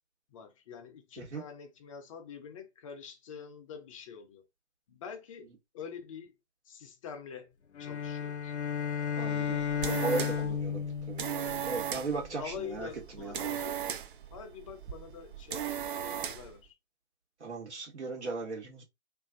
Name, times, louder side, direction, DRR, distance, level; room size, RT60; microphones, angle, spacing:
voice 1, 0.3-4.4 4.9-5.5 5.7-6.3 6.6-7.5 7.8-8.5 12.4-13.9 14.3-16.7, left 7 dB, 30° left, 0.5 m, -45 dB
sound 1, 7.7-12.2, left 7 dB, 75° left, 0.7 m, -34 dB
voice 2, 9.2-11.3 11.6-12.9 13.1-13.3 17.4-18.8, right 4 dB, 75° right, 1.3 m, -37 dB
sound 2, 9.4-16.6, right 9 dB, 50° right, 0.5 m, -38 dB
2.5 x 2.4 x 2.5 m
figure-of-eight pair, 125°, 34 cm